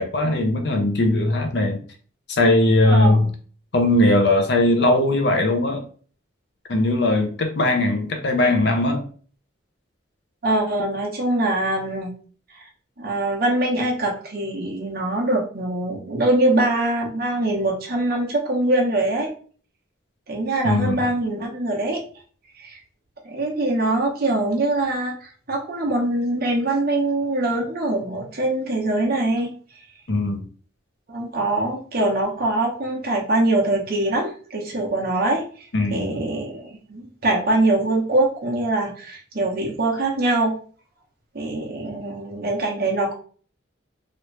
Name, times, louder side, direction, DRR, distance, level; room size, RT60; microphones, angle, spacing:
voice 1, 0.0-1.8 2.3-3.3 3.7-5.8 6.7-9.0 20.6-21.0 30.1-30.4 35.7-36.2, left 1 dB, 60° left, 4 dB, 0.6 m, -19 dB
voice 2, 2.8-3.3 10.4-12.1 13.0-19.3 20.3-22.0 22.6-22.8 23.2-29.5 31.1-40.5 41.3-43.1, right 2 dB, 50° right, -2 dB, 0.9 m, -23 dB
3.0 x 2.6 x 3.2 m, 0.43 s
head